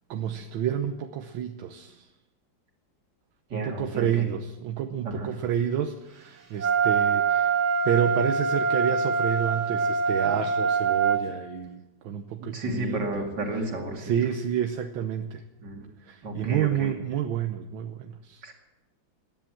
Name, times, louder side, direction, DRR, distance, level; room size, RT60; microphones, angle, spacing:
voice 1, 0.1-2.1 3.5-7.6 7.8-13.3 14.0-15.4 16.0-18.4, right 9 dB, 80° right, 7 dB, 1.6 m, -29 dB
voice 2, 3.5-4.2 5.0-5.3 12.5-14.1 15.6-15.8 16.2-16.9 18.4-18.5, right 1 dB, 60° right, 2 dB, 3.1 m, -32 dB
Wind instrument woodwind instrument, 6.6-11.2, right 5 dB, 40° right, 1.8 m, -24 dB
18.5 x 10.5 x 7.6 m, 1.0 s
omnidirectional pair, 2.1 m